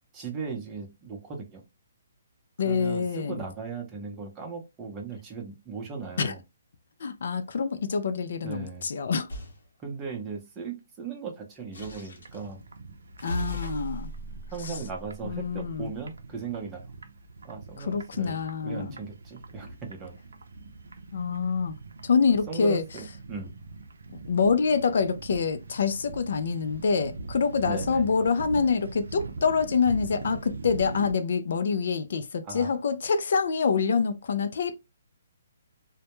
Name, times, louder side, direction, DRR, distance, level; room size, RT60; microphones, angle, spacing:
voice 1, 0.1-1.6 2.6-6.4 8.4-8.9 9.8-12.6 13.2-13.3 14.5-16.9 17.4-18.4 18.6-20.2 22.5-23.5 27.6-28.1 32.4-32.7, right 5 dB, 15° right, 0.6 m, -37 dB
voice 2, 2.6-3.4 6.2-6.3 7.0-9.3 13.2-14.1 14.6-14.7 15.2-15.9 17.8-19.0 21.1-21.7 22.0-22.8 24.3-34.8, left 5 dB, 65° left, 0.4 m, -26 dB
sound 1, 9.3-9.6 11.7-12.5 13.2-15.8, right 1 dB, 80° left, 0.8 m, -38 dB
sound 2, 12.1-31.1, right 3 dB, 90° right, 0.4 m, -42 dB
2.1 x 2.1 x 2.9 m
hypercardioid pair, 160°, 0 cm